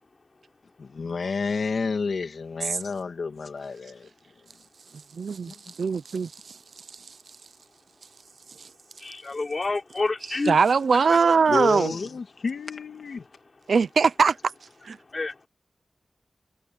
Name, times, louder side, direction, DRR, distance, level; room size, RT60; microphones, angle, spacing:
voice 1, 0.8-4.1 5.5-5.7 11.5-13.3, left 4 dB, 85° left, 2.6 m, -30 dB
voice 2, 5.1-6.6 10.5-11.9 13.7-14.4 14.8-15.0, right 5 dB, 90° right, 0.7 m, -21 dB
voice 3, 9.0-10.6 11.1-11.2 15.1-15.4, left 3 dB, 45° left, 4.4 m, -28 dB
wide cardioid pair, 100°, 0 cm